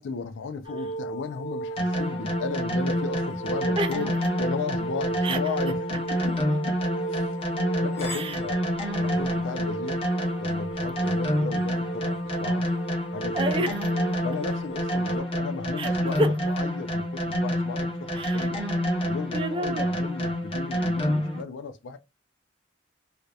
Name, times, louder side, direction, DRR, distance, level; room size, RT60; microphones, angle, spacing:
voice 1, 0.0-4.1 4.4-6.8 7.1-7.3 7.8-8.7 9.0-10.0 10.4-12.7 13.1-13.8 14.2-18.6 19.0-22.0, left 5 dB, 85° left, 0.4 m, -35 dB
sound 1, 0.6-15.2, right 2 dB, 60° left, 0.9 m, -35 dB
sound 2, 1.8-21.4, equal, 30° left, 0.8 m, -28 dB
voice 2, 13.3-13.8 15.8-16.3 18.1-18.5 19.3-19.9, right 1 dB, 30° right, 0.4 m, -28 dB
2.7 x 2.1 x 2.2 m
head